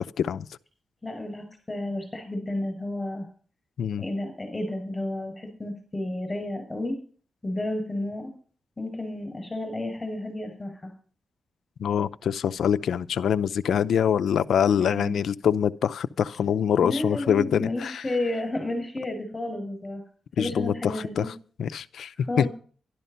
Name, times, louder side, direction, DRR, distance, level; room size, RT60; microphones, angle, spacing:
voice 1, 1.0-3.2 4.0-7.0 7.4-8.3 8.8-10.9 14.8-15.2 16.8-20.0 20.4-21.3 22.2-22.5, left 1 dB, 20° left, 6.6 m, -31 dB
voice 2, 11.8-18.0 20.4-21.3 21.6-22.5, left 8 dB, 80° left, 0.6 m, -24 dB
12.0 x 12.0 x 5.6 m
cardioid pair, 110°, 0 cm